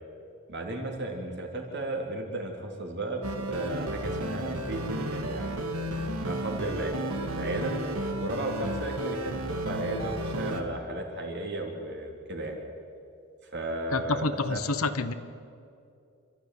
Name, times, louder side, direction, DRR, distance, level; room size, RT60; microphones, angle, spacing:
voice 1, 0.5-5.7 6.2-7.7 8.2-12.6 13.4-14.2 14.5-14.6, right 1 dB, 55° right, 1 dB, 3.5 m, -34 dB
sound 1, 3.2-10.6, right 1 dB, 85° right, 2.2 m, -33 dB
voice 2, 13.9-15.1, left 3 dB, 75° left, 11 dB, 1.1 m, -28 dB
27.5 x 13.5 x 9.5 m, 2.4 s
head